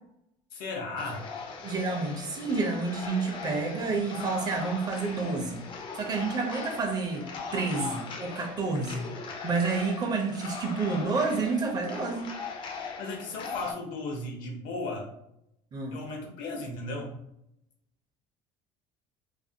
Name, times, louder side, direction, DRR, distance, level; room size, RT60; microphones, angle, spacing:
voice 1, 0.5-1.3 12.8-15.1 15.9-17.2, left 2 dB, 75° left, 1 dB, 0.7 m, -36 dB
sound 1, 1.0-13.7, left 5 dB, 35° left, 0.4 m, -39 dB
voice 2, 1.6-5.6 5.9-9.1 9.4-12.3 15.7-16.0, right 4 dB, 30° right, 3 dB, 0.4 m, -29 dB
2.4 x 2.1 x 2.6 m, 0.79 s
cardioid pair, 135°, 14 cm